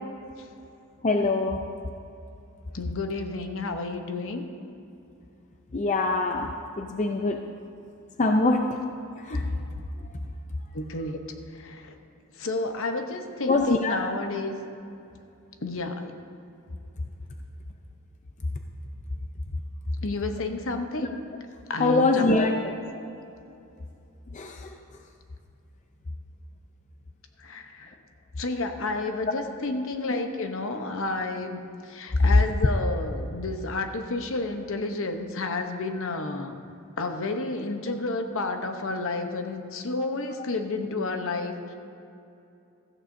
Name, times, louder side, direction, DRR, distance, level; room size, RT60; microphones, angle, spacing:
voice 1, 1.0-1.6 5.7-7.4 8.2-9.5 13.5-14.0 21.0-21.1 21.8-22.7 24.3-24.7 30.1-30.2, left 3 dB, 35° left, 4 dB, 0.5 m, -24 dB
voice 2, 2.7-4.4 10.7-11.2 11.5-11.9 12.4-14.6 15.6-16.1 20.0-21.0 21.7-22.2 27.4-27.9 28.4-31.6 31.9-36.6 37.0-41.7, left 2 dB, 65° left, 6 dB, 0.9 m, -31 dB
15.0 x 14.0 x 2.7 m, 2.7 s
head